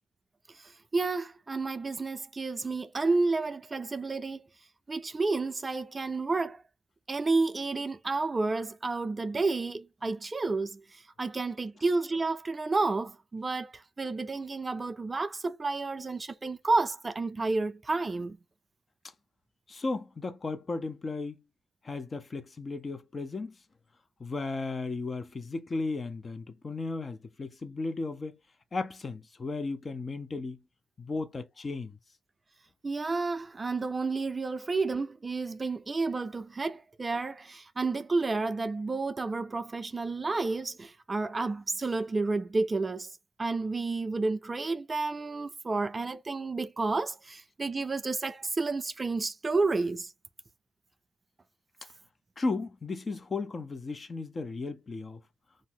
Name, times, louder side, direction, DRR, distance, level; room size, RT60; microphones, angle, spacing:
voice 1, 0.5-4.4 4.9-6.6 7.1-18.4 32.8-50.1, right 3 dB, 30° right, 0.3 m, -31 dB
voice 2, 19.7-21.4 21.8-23.5 24.2-28.4 28.7-30.6 31.0-32.0 52.4-55.2, left 3 dB, 40° left, 0.5 m, -35 dB
2.6 x 2.0 x 3.5 m
supercardioid pair, 50°, 0 cm